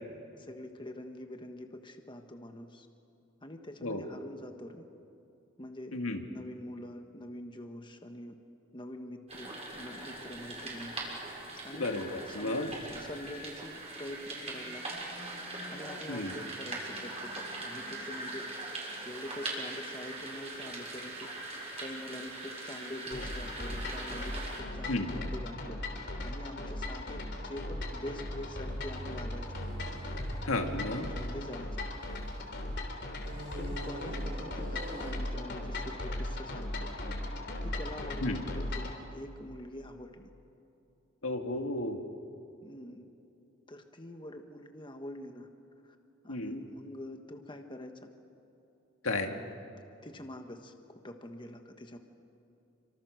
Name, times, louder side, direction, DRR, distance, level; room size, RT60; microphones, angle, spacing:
voice 1, 0.4-2.9 3.4-4.9 5.6-6.0 6.3-8.4 8.7-11.0 11.6-11.9 12.2-15.1 15.7-18.5 19.0-21.3 21.8-25.8 26.2-29.5 30.5-31.8 33.6-36.9 37.6-40.3 42.6-43.1 43.7-45.5 45.8-46.0 46.2-48.1 49.3-49.5 50.0-50.7 51.0-52.0, left 1 dB, 25° left, 5 dB, 1.4 m, -45 dB
voice 2, 5.9-6.2 11.8-12.7 16.1-16.3 24.9-25.1 30.4-31.1 38.2-38.4 41.2-42.0 46.3-46.6 49.0-49.4, left 2 dB, 90° left, 4 dB, 2.1 m, -33 dB
sound 1, 9.3-24.6, right 2 dB, 30° right, 6.5 m, -41 dB
sound 2, 23.1-39.0, left 1 dB, 60° left, 3.5 m, -38 dB
sound 3, 27.7-32.4 33.2-36.6, right 1 dB, 55° right, 3.9 m, -45 dB
28.5 x 25.5 x 6.5 m, 2.8 s
head